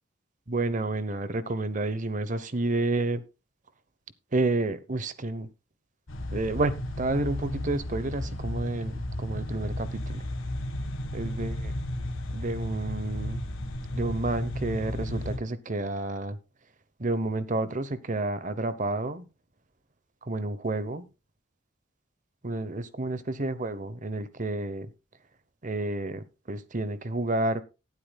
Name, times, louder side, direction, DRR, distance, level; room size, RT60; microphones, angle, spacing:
voice 1, 0.5-3.2 4.3-5.5 6.3-10.3 11.1-11.7 12.3-13.4 13.9-16.4 17.0-19.3 20.2-21.1 22.4-24.9 25.6-27.6, right 2 dB, 40° right, 0.9 m, -30 dB
sound 1, 6.1-15.4, left 1 dB, 85° left, 1.7 m, -34 dB
19.0 x 8.4 x 2.3 m
head